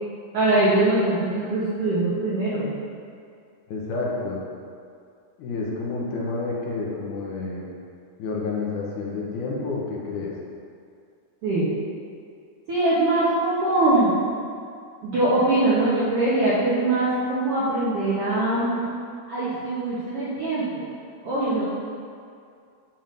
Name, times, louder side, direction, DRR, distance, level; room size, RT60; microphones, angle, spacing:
voice 1, 0.3-2.7 11.4-11.7 12.7-14.1 15.0-18.9 19.3-20.7 21.2-21.6, right 2 dB, 60° right, -10 dB, 1.6 m, -22 dB
voice 2, 3.7-4.4 5.4-7.7 8.2-10.3, left 3 dB, 75° left, -3 dB, 2.3 m, -29 dB
7.2 x 5.9 x 2.6 m, 2.4 s
omnidirectional pair, 3.6 m